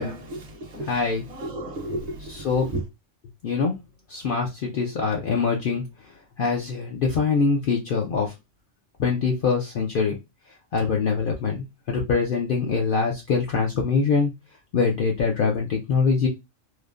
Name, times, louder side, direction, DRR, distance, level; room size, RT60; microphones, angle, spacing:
voice 1, 0.0-2.8, right 1 dB, 45° right, 0.6 m, -33 dB
voice 2, 0.9-1.2 2.4-2.7 3.4-3.7 4.1-5.8 6.4-8.3 9.0-10.1 10.7-14.3 14.7-16.3, left 5 dB, 60° left, 0.6 m, -23 dB
3.1 x 2.0 x 2.4 m
omnidirectional pair, 1.3 m